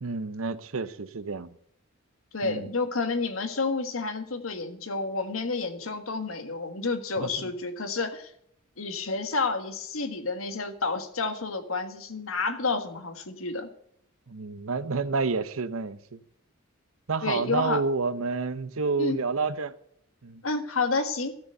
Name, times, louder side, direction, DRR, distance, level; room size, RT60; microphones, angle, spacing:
voice 1, 0.0-1.6 2.4-2.7 7.2-7.5 14.3-16.2 17.1-19.7 20.2-20.4, right 4 dB, 80° right, 0.8 m, -29 dB
voice 2, 2.3-8.3 8.8-13.7 17.2-17.8 19.0-19.2 20.4-21.3, left 3 dB, 80° left, 1.5 m, -30 dB
13.0 x 6.9 x 7.7 m
head